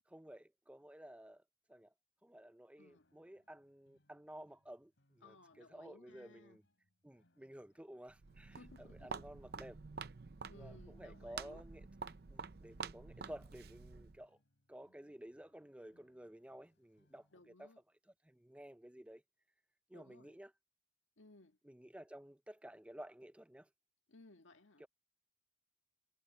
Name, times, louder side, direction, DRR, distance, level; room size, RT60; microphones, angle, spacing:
voice 1, 0.1-1.4 1.7-1.9 2.2-6.6 7.0-9.8 10.5-11.9 12.3-14.4 14.7-17.7 18.2-19.2 19.9-20.5 21.6-23.7 24.8-24.9, right 1 dB, 5° right, 0.4 m, -54 dB
voice 2, 2.8-3.1 5.2-6.6 8.6-9.3 10.5-11.6 17.3-17.8 19.9-20.4 21.2-21.6 24.1-24.8, left 2 dB, 90° left, 1.8 m, -61 dB
sound 1, 2.9-17.5, left 1 dB, 75° left, 3.5 m, -79 dB
Walk footsteps, 8.1-14.2, right 5 dB, 55° right, 0.6 m, -49 dB
head